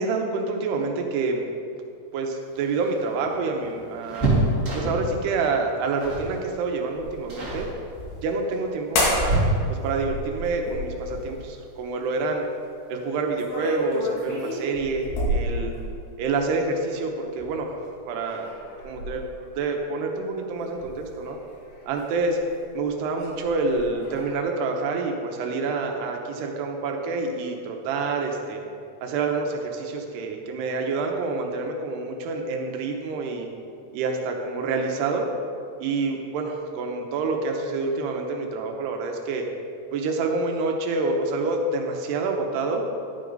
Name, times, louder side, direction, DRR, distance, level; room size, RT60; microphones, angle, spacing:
voice 1, 0.0-1.5 2.1-4.3 4.7-7.7 8.2-12.4 12.9-15.7 16.2-17.8 18.1-18.6 18.8-19.2 19.6-21.4 21.9-22.4 22.7-28.6 29.0-33.5 33.9-35.3 35.8-39.4 39.9-42.8, right 3 dB, 85° right, 2 dB, 3.1 m, -27 dB
sound 1, 2.5-5.2 6.0-6.3 6.6-6.9 7.3-7.7 8.5-10.0 11.7-11.8 12.2-12.3 13.5-13.9 14.2-14.3 14.6-14.8, right 1 dB, 25° right, 1.9 m, -27 dB
sound 2, 7.0-8.3 8.9-9.5 9.8-11.5 13.3-16.2 17.4-17.9 18.3-19.4 20.6-22.6 22.9-24.4, left 1 dB, 80° left, 4.3 m, -31 dB
12.0 x 10.0 x 4.0 m, 2.5 s
omnidirectional pair, 4.6 m